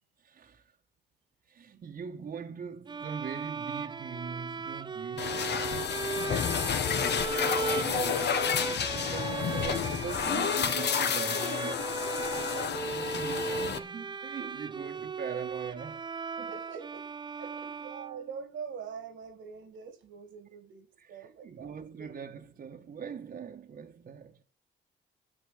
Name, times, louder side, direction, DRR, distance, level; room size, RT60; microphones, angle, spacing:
voice 1, 0.2-0.8 1.5-5.5 7.8-16.1 16.4-16.5 17.4-17.8 21.0-24.4, right 6 dB, 50° right, 1.4 m, -42 dB
sound 1, 2.9-18.5, right 4 dB, 25° right, 0.5 m, -37 dB
sound 2, 5.2-13.8, left 7 dB, 60° left, 1.3 m, -30 dB
voice 2, 6.5-7.8 8.1-8.3 16.5-17.1 17.7-22.2, right 6 dB, 80° right, 2.3 m, -45 dB
10.0 x 7.8 x 8.0 m
cardioid pair, 90°, 20 cm